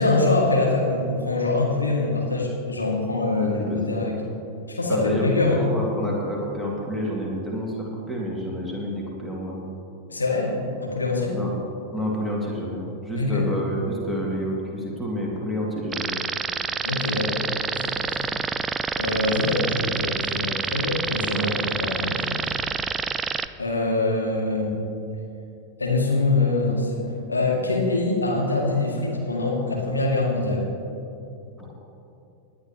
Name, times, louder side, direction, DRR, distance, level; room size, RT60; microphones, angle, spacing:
voice 1, 0.0-4.2 4.7-5.6 10.1-11.4 13.1-13.4 16.8-18.3 19.0-22.5 23.6-24.9 25.8-30.6, left 2 dB, 80° left, -1 dB, 2.1 m, -24 dB
voice 2, 3.4-3.9 4.9-7.7 8.1-9.8 11.3-11.5 11.9-16.1 21.3-21.5 31.6-31.7, equal, 5° left, -3 dB, 2.3 m, -29 dB
sound 1, 15.9-23.5, right 5 dB, 15° right, 0.4 m, -27 dB
19.0 x 10.5 x 3.0 m, 2.8 s
figure-of-eight pair, 90°, 0 cm